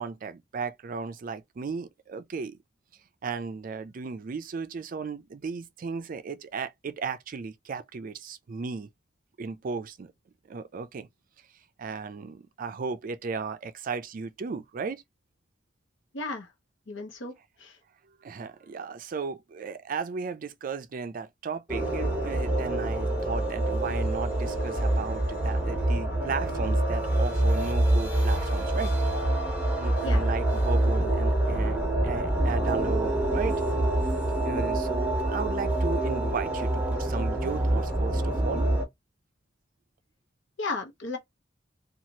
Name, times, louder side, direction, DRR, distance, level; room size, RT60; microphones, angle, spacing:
voice 1, 0.0-2.6 3.2-8.9 9.4-10.1 10.5-11.1 11.8-15.0 18.2-28.9 29.8-33.6 34.4-38.7, right 5 dB, 45° right, 0.4 m, -35 dB
voice 2, 16.1-16.5 16.9-17.3 17.6-17.8 30.0-30.3 40.6-41.2, left 3 dB, 80° left, 0.9 m, -34 dB
sound 1, 21.7-38.8, right 1 dB, 10° right, 1.0 m, -26 dB
2.9 x 2.4 x 2.7 m
head